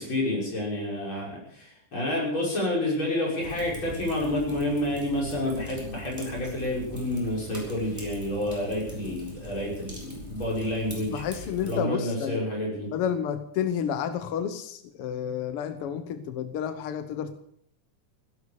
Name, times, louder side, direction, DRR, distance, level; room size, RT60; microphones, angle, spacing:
voice 1, 0.0-11.2 11.6-12.9, left 1 dB, 35° left, -3 dB, 6.7 m, -29 dB
Fire, 3.4-11.8, equal, 5° right, 4.9 m, -42 dB
voice 2, 11.1-12.5 12.9-17.4, left 8 dB, 70° left, 10 dB, 1.4 m, -30 dB
16.5 x 11.5 x 7.0 m, 0.65 s
omnidirectional pair, 3.7 m